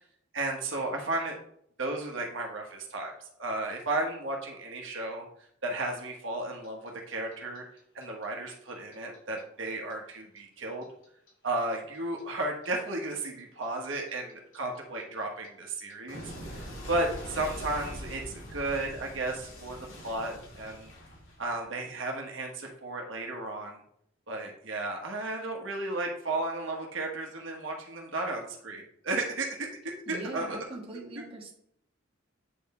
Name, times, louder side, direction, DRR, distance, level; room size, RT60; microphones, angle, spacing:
voice 1, 0.3-1.4 1.8-3.1 3.4-5.3 5.6-7.6 7.9-10.8 11.4-19.8 20.0-20.9 21.4-23.8 24.3-30.6, right 2 dB, 75° right, 1 dB, 1.3 m, -34 dB
Clock, 6.4-9.4 9.7-12.7 12.9-21.8, equal, 70° left, 3.2 m, -43 dB
voice 2, 30.1-31.5, right 2 dB, 30° right, -1 dB, 1.5 m, -41 dB
8.4 x 4.0 x 4.3 m, 0.69 s
head